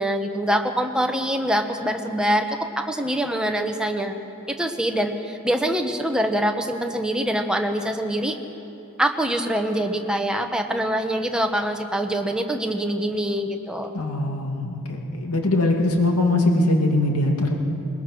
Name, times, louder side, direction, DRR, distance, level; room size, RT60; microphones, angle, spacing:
voice 1, 0.0-4.1 4.5-8.4 9.0-13.9, right 1 dB, 5° right, 4 dB, 1.1 m, -24 dB
voice 2, 13.9-17.5, left 2 dB, 85° left, 2 dB, 2.3 m, -21 dB
21.0 x 20.5 x 6.1 m, 2.9 s
head